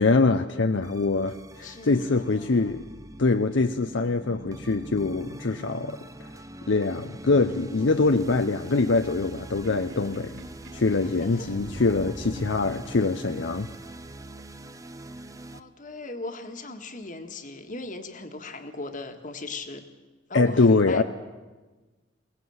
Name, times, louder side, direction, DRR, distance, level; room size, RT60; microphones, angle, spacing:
voice 1, 0.0-2.8 3.2-6.3 6.7-10.3 10.7-13.7 20.3-21.0, left 3 dB, 70° left, 8 dB, 0.7 m, -24 dB
sound 1, 0.8-15.6, right 1 dB, 15° right, 0.7 m, -43 dB
voice 2, 1.6-2.7 11.0-11.6 15.5-19.9 20.3-21.0, left 2 dB, 45° left, 6 dB, 1.7 m, -38 dB
Sink (filling or washing), 9.5-13.3, equal, 80° right, 4.6 m, -44 dB
22.5 x 18.0 x 7.9 m, 1.2 s
head